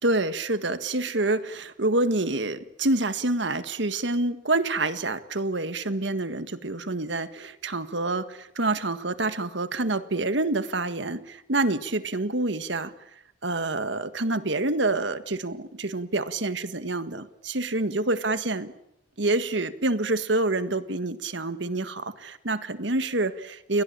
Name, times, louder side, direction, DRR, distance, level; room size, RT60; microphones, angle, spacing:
voice 1, 0.0-12.9 13.4-18.7 19.2-23.8, right 2 dB, 65° right, 11 dB, 1.7 m, -27 dB
29.5 x 22.0 x 8.8 m, 0.81 s
head